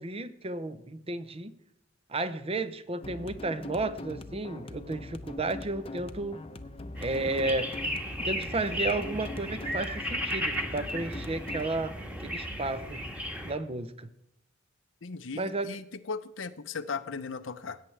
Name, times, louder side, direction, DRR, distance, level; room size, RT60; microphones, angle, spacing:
voice 1, 0.0-1.5 2.1-6.4 7.0-7.7 8.2-13.0 13.4-14.1 15.3-15.7, right 2 dB, 30° right, 0.6 m, -33 dB
sound 1, 3.0-11.7, left 2 dB, 30° left, 0.7 m, -42 dB
sound 2, 7.0-13.5, equal, 10° right, 1.5 m, -35 dB
voice 2, 15.0-17.8, left 5 dB, 80° left, 0.7 m, -37 dB
17.0 x 8.7 x 3.3 m
head